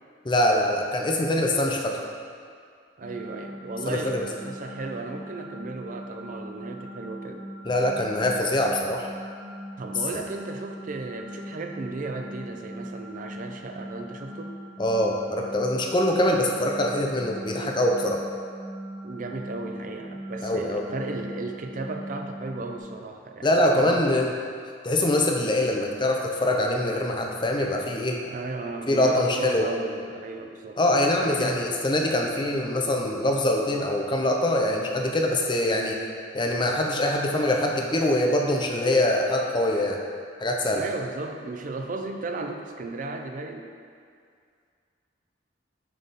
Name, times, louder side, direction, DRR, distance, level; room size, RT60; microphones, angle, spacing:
voice 1, 0.2-2.0 3.9-4.3 7.7-9.1 14.8-18.2 20.4-20.8 23.4-24.3 24.8-28.2 28.9-29.7 30.8-36.0 36.3-40.0 40.4-40.8, left 1 dB, 25° left, 1 dB, 0.6 m, -24 dB
voice 2, 3.0-7.5 9.8-14.6 19.0-24.2 28.2-30.8 31.2-31.7 40.8-43.7, right 3 dB, 45° right, 4 dB, 0.5 m, -35 dB
sound 1, 3.0-22.8, equal, 90° right, 0.7 m, -40 dB
7.5 x 3.5 x 4.1 m, 2.2 s
head